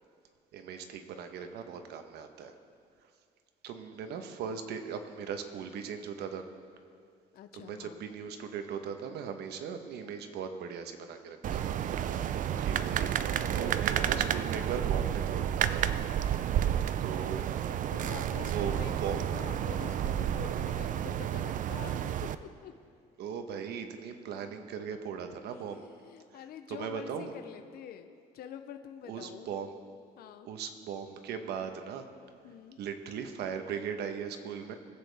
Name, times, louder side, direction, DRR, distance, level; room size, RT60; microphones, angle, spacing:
voice 1, 0.5-2.5 3.6-6.5 7.5-11.7 12.6-13.2 13.5-15.8 17.0-17.4 18.4-18.7 19.0-19.2 23.2-25.9 26.7-27.3 29.1-29.7 30.4-32.1 32.8-34.8, right 7 dB, 75° right, 7 dB, 1.1 m, -38 dB
voice 2, 7.3-8.0 12.4-13.0 17.6-22.7 25.4-29.5 30.2-30.5 32.4-32.8, left 9 dB, 65° left, 8 dB, 0.7 m, -47 dB
sound 1, 11.4-22.3, right 10 dB, 50° right, 0.5 m, -31 dB
21.5 x 8.4 x 3.5 m, 2.2 s
cardioid pair, 110°, 17 cm